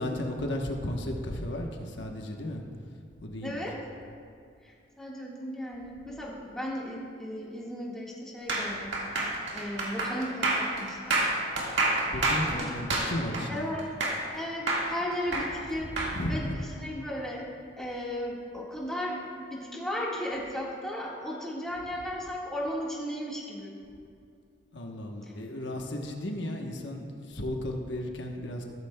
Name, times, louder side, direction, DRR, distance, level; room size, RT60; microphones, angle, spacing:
voice 1, 0.0-2.6 3.2-3.6 12.1-13.7 16.1-16.4 24.7-28.6, left 1 dB, 75° left, 1 dB, 1.0 m, -34 dB
voice 2, 3.4-3.8 4.6-9.2 9.5-11.2 11.7-11.8 12.5-12.7 13.5-13.9 14.3-15.9 16.2-17.4 17.8-23.7, equal, 5° left, -5 dB, 1.6 m, -35 dB
sound 1, 8.5-14.4 14.7-16.1, right 2 dB, 70° right, 1.8 m, -28 dB
14.0 x 13.0 x 2.2 m, 2.3 s
head